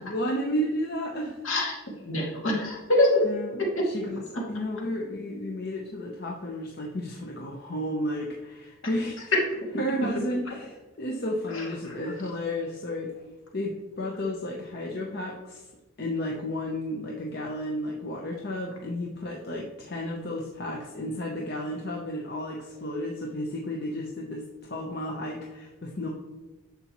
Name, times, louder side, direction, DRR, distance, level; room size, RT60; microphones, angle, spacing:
voice 1, 0.0-1.4 3.2-4.2 4.5-9.3 9.8-13.1 13.5-15.6 16.0-26.1, left 1 dB, 50° left, -1 dB, 0.9 m, -32 dB
voice 2, 1.4-3.2 3.8-3.9 11.5-11.9, left 1 dB, 70° left, -2 dB, 2.3 m, -25 dB
10.5 x 7.0 x 3.1 m, 1.2 s
head